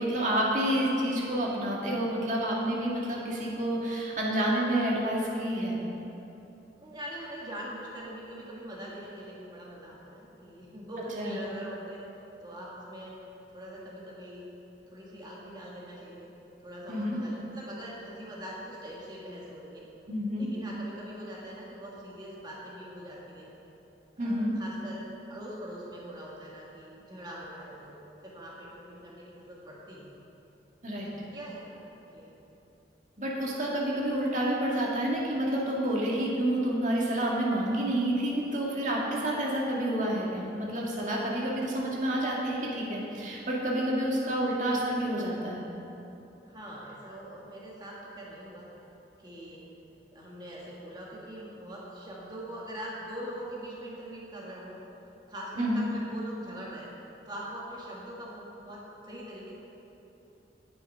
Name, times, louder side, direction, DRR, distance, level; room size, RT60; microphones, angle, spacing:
voice 1, 0.0-5.8 11.2-11.4 16.9-17.2 20.1-20.5 24.2-24.5 30.8-31.1 33.2-45.7 55.6-55.9, right 1 dB, 45° right, -4 dB, 1.9 m, -29 dB
voice 2, 6.8-12.0 12.4-13.2 13.5-14.5 14.9-16.3 16.6-19.9 20.4-23.5 24.2-25.0 25.3-30.1 31.0-32.4 46.4-48.7 49.2-49.6 50.1-54.8 55.3-56.9 57.2-59.5, right 1 dB, 25° right, -5 dB, 1.6 m, -42 dB
10.0 x 8.8 x 5.4 m, 3.0 s
head